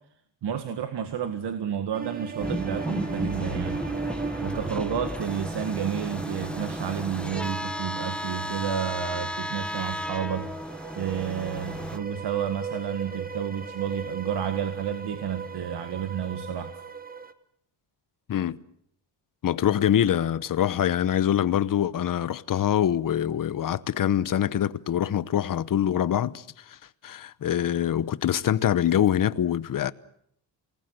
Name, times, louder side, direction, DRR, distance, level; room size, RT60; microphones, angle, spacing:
voice 1, 0.4-3.8 4.4-10.5 10.9-16.7, right 8 dB, 65° right, 1.9 m, -31 dB
sound 1, 1.9-17.3, right 5 dB, 20° right, 1.3 m, -38 dB
sound 2, 2.4-12.0, left 1 dB, ahead, 1.2 m, -34 dB
voice 2, 19.4-26.8 27.0-29.9, left 10 dB, 45° left, 0.9 m, -24 dB
28.0 x 19.5 x 8.2 m
cardioid pair, 140°, 44 cm